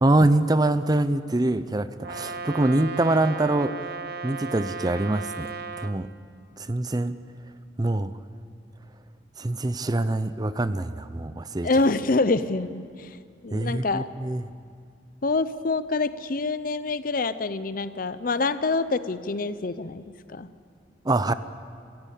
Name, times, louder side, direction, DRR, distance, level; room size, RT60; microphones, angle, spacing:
voice 1, 0.0-3.7 4.2-5.5 5.8-6.1 6.6-7.1 7.8-8.1 9.4-11.7 13.5-14.4 21.1-21.3, right 2 dB, 20° right, 13 dB, 0.6 m, -24 dB
Brass instrument, 2.0-6.0, right 4 dB, 60° right, 1.0 m, -35 dB
voice 2, 11.6-13.2 13.4-14.1 15.2-20.5, left 3 dB, 50° left, 14 dB, 0.7 m, -26 dB
25.0 x 15.5 x 8.4 m, 2.3 s
head